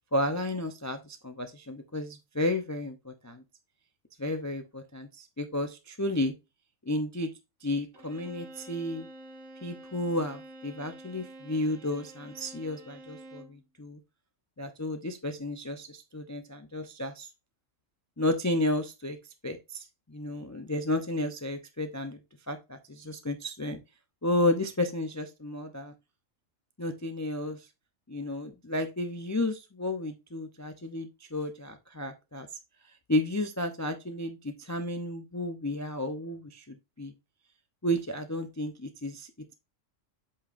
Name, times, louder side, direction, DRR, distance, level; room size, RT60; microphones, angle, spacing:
voice 1, 0.1-3.4 4.2-6.3 6.9-7.3 7.6-9.1 9.6-14.0 14.6-17.3 18.2-19.2 19.4-22.2 22.5-23.8 24.2-25.9 26.8-27.6 28.1-32.5 33.1-37.1 37.8-39.3, left 1 dB, 25° left, 7 dB, 0.4 m, -32 dB
Bowed string instrument, 7.9-13.6, right 1 dB, 65° right, 1.8 m, -48 dB
8.2 x 5.6 x 2.5 m, 0.25 s
omnidirectional pair, 1.3 m